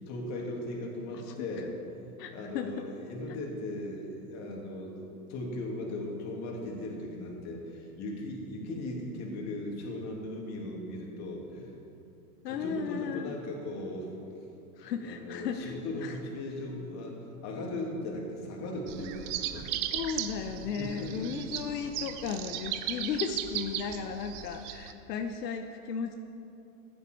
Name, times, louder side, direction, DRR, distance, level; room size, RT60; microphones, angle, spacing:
voice 1, 0.1-11.7 12.5-14.1 14.8-17.2 17.4-20.0 20.8-21.4 22.2-22.4, left 1 dB, 35° left, -1 dB, 2.7 m, -38 dB
voice 2, 1.1-1.5 2.2-2.7 12.4-13.4 14.8-16.2 19.9-26.1, left 6 dB, 80° left, 5 dB, 1.0 m, -35 dB
sound 1, 18.9-24.9, right 11 dB, 25° right, 0.4 m, -37 dB
15.0 x 10.5 x 4.6 m, 2.7 s
supercardioid pair, 140°, 48 cm